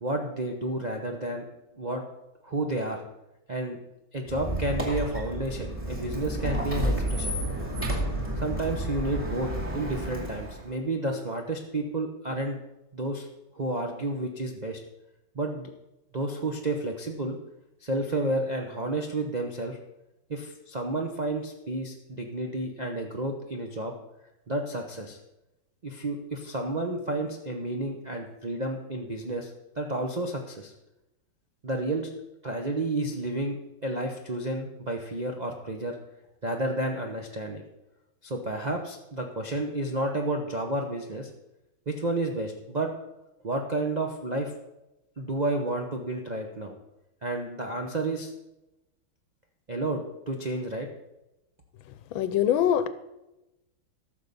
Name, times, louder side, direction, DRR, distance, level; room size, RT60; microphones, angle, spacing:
voice 1, 0.0-1.4 1.7-2.0 2.4-3.0 3.5-3.8 4.1-7.3 8.4-12.6 12.9-13.3 13.5-14.8 15.3-15.7 16.1-17.4 17.8-19.8 20.3-23.9 24.5-25.2 25.8-29.5 29.8-30.7 31.6-32.1 32.4-33.6 33.8-36.0 36.4-37.6 38.2-41.3 41.9-42.9 43.4-44.5 45.2-46.8 47.2-48.3 49.7-50.9, right 2 dB, 65° right, 2 dB, 0.4 m, -31 dB
Squeak, 4.3-10.7, right 1 dB, 5° right, 2.2 m, -31 dB
voice 2, 52.1-52.9, left 10 dB, 80° left, 13 dB, 1.5 m, -23 dB
13.5 x 6.5 x 5.3 m, 0.96 s
omnidirectional pair, 2.2 m